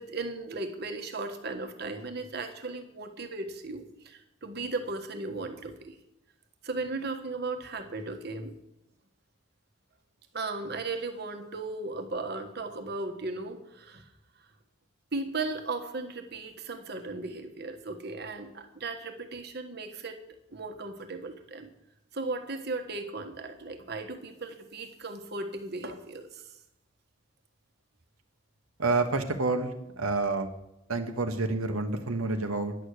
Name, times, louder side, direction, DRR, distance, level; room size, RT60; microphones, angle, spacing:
voice 1, 0.0-6.0 6.6-8.6 10.3-14.1 15.1-20.2 20.5-21.7 22.1-26.5, right 3 dB, 50° right, 6 dB, 1.4 m, -36 dB
voice 2, 28.8-30.5 30.9-32.8, right 3 dB, 80° right, 6 dB, 1.2 m, -28 dB
11.0 x 6.5 x 8.3 m, 0.88 s
head